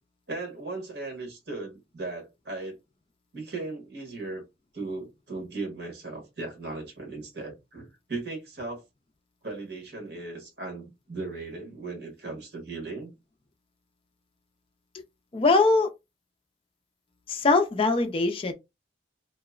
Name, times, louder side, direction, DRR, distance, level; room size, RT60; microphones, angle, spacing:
voice 1, 0.3-2.8 3.3-4.4 4.7-8.8 9.4-13.1, right 3 dB, 65° right, 1.2 m, -37 dB
voice 2, 15.3-15.9 17.3-18.5, left 3 dB, 30° left, 0.4 m, -22 dB
2.8 x 2.0 x 2.3 m
head